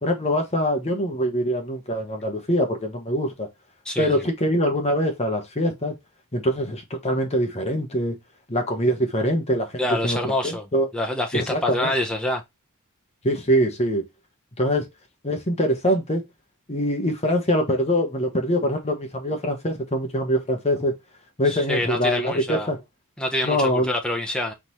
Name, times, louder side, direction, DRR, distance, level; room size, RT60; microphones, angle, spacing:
voice 1, 0.0-3.5 4.0-6.0 6.3-8.2 8.5-10.2 10.4-10.9 11.3-11.9 13.2-14.0 14.6-14.9 15.2-16.2 16.7-20.9 21.4-22.8 23.4-23.9, equal, 30° left, 1.1 m, -23 dB
voice 2, 3.8-4.2 9.8-10.7 10.9-12.4 21.4-22.7 23.2-24.5, left 1 dB, 5° left, 0.8 m, -26 dB
4.1 x 3.9 x 3.0 m
head